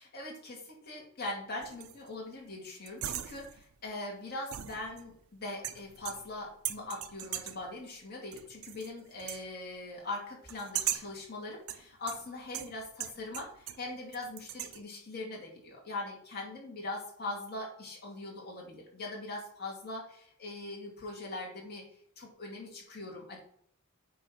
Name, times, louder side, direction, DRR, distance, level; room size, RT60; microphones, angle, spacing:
voice 1, 0.0-21.9 22.2-23.4, left 2 dB, 45° left, -1 dB, 2.3 m, -41 dB
sound 1, 1.6-2.1 2.9-3.7 4.5-5.2 5.6-6.4 6.7-7.7 8.3-8.9 9.2-9.5 10.5-11.2 11.7-13.9 14.1-14.8, right 12 dB, 70° right, 0.6 m, -39 dB
8.1 x 3.1 x 5.6 m, 0.65 s
head